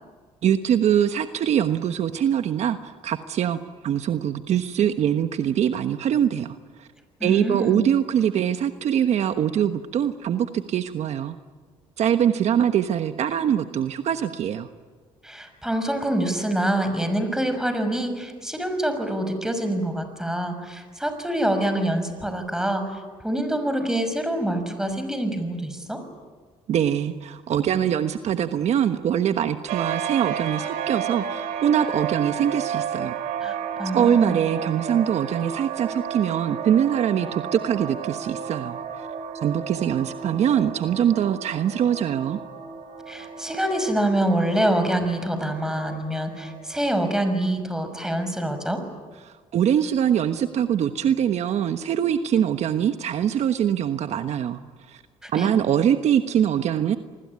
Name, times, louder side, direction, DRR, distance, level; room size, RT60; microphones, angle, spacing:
voice 1, 0.4-3.6 3.8-6.9 7.2-11.4 12.0-14.7 26.7-33.2 33.9-39.1 39.4-42.4 49.2-54.6 54.9-55.0 55.3-57.0, right 9 dB, 60° right, 9 dB, 1.3 m, -23 dB
voice 2, 7.2-7.8 15.2-26.0 33.4-34.4 43.1-48.8 55.2-55.5, right 1 dB, 5° right, 8 dB, 6.0 m, -26 dB
sound 1, 29.7-46.9, right 7 dB, 85° right, 3.1 m, -32 dB
28.0 x 20.5 x 9.7 m, 1.5 s
cardioid pair, 85°, 13 cm